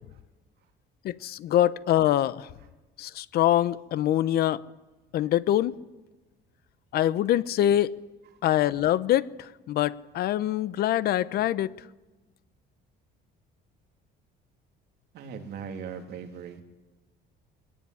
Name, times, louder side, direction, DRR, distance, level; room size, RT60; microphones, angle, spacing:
voice 1, 1.0-2.5 3.0-4.6 5.1-5.8 6.9-7.9 8.4-9.3 9.7-11.8, left 12 dB, 55° left, 0.8 m, -24 dB
voice 2, 15.1-16.6, right 6 dB, 60° right, 3.1 m, -39 dB
23.0 x 18.5 x 9.9 m
cardioid pair, 165°, 19 cm